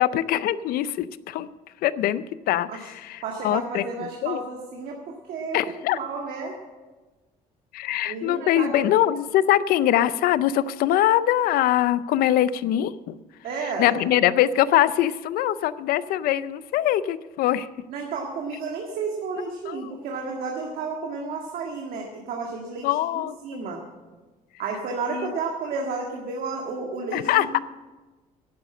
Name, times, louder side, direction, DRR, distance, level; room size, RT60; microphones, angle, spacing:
voice 1, 0.0-1.5 1.8-4.4 5.5-6.0 7.7-13.2 13.6-17.7 19.7-19.9 22.8-23.6 25.1-25.3 27.1-27.6, left 12 dB, 85° left, 16 dB, 0.5 m, -23 dB
voice 2, 3.2-5.0 5.3-5.6 5.9-6.5 8.0-8.7 13.4-13.9 17.9-22.9 23.2-23.8 24.6-27.6, right 4 dB, 75° right, 0 dB, 2.0 m, -32 dB
11.5 x 10.0 x 7.6 m, 1.2 s
cardioid pair, 120°, 15 cm